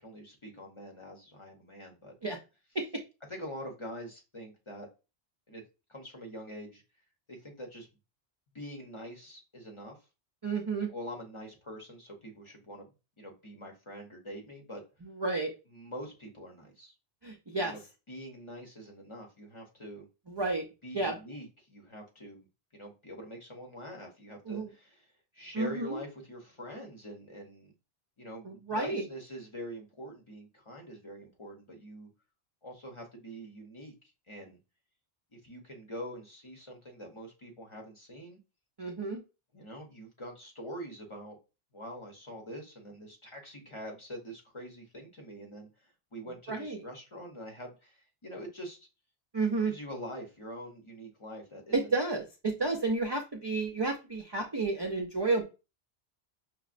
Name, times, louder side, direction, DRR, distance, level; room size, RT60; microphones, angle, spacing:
voice 1, 0.0-2.1 3.3-4.9 5.5-5.6 5.9-6.8 7.3-7.9 8.5-10.0 10.9-12.9 13.2-14.8 15.7-16.9 17.5-17.8 18.1-20.1 20.8-22.5 22.7-27.7 28.2-32.1 32.6-33.9 34.3-34.6 35.3-38.4 39.5-41.4 41.7-48.8 49.6-51.9, equal, 35° left, 1 dB, 0.7 m, -45 dB
voice 2, 10.4-10.9 15.0-15.5 17.2-17.7 20.3-20.6 20.9-21.2 24.5-24.7 25.5-26.0 28.4-29.0 38.8-39.2 46.5-46.8 49.3-49.7 51.7-55.4, right 3 dB, 45° right, 2 dB, 0.3 m, -31 dB
5.7 x 2.0 x 2.4 m, 0.30 s
omnidirectional pair, 1.1 m